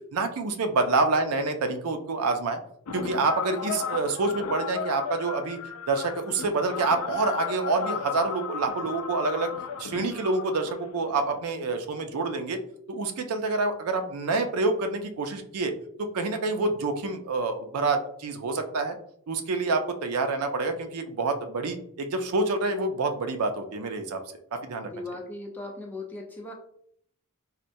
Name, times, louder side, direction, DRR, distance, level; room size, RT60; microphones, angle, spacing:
voice 1, 0.1-2.6 2.9-5.6 5.9-9.5 9.8-12.6 12.9-15.7 16.1-18.9 19.3-24.2 24.5-24.9, right 3 dB, 70° right, 6 dB, 0.4 m, -27 dB
sound 1, 2.9-11.4, left 6 dB, 70° left, 0.4 m, -35 dB
voice 2, 24.8-26.5, left 2 dB, 10° left, 0 dB, 0.5 m, -38 dB
4.2 x 2.1 x 2.6 m, 0.66 s
head